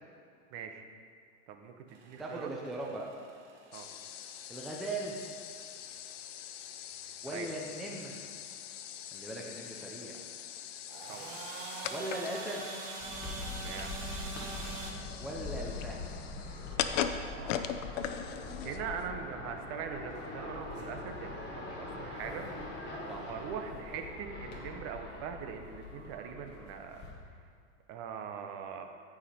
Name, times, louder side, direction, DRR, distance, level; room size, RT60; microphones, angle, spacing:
voice 1, 0.5-0.9 1.5-2.5 3.7-3.9 7.3-7.5 11.1-11.3 13.6-13.9 17.3-17.7 18.6-22.5 23.2-27.0 27.9-28.9, right 7 dB, 35° right, 5 dB, 0.8 m, -42 dB
sound 1, 1.9-14.9, right 4 dB, 65° right, 1.8 m, -46 dB
voice 2, 2.2-3.1 4.5-5.1 7.2-8.3 9.1-10.2 11.9-12.6 15.2-16.0 23.1-23.3, right 1 dB, ahead, -2 dB, 0.5 m, -39 dB
sound 2, 3.7-19.1, left 9 dB, 70° left, 0.7 m, -41 dB
sound 3, 13.0-27.1, left 3 dB, 25° left, 1.6 m, -43 dB
14.5 x 5.0 x 4.3 m, 2.3 s
supercardioid pair, 140°, 39 cm